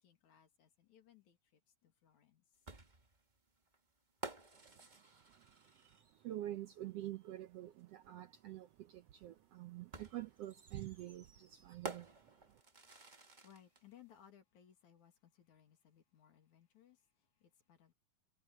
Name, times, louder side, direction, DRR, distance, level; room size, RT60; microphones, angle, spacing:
voice 1, 0.0-2.4 12.4-17.9, left 10 dB, 70° left, 3.6 m, -65 dB
sound 1, 2.7-6.3 7.8-7.9 9.9-13.8, right 3 dB, 25° right, 1.1 m, -52 dB
voice 2, 5.6-12.6, right 14 dB, 75° right, 1.5 m, -47 dB
omnidirectional pair, 3.5 m